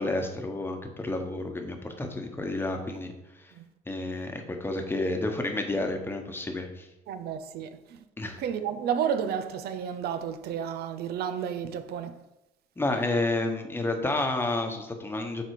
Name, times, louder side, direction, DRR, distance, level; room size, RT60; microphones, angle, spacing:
voice 1, 0.0-3.5 3.9-6.9 8.2-8.4 12.8-15.4, left 2 dB, 15° left, 1.1 m, -30 dB
voice 2, 7.1-8.0 8.4-12.1, right 8 dB, 70° right, 0.7 m, -31 dB
7.8 x 4.1 x 4.8 m
cardioid pair, 110°, 17 cm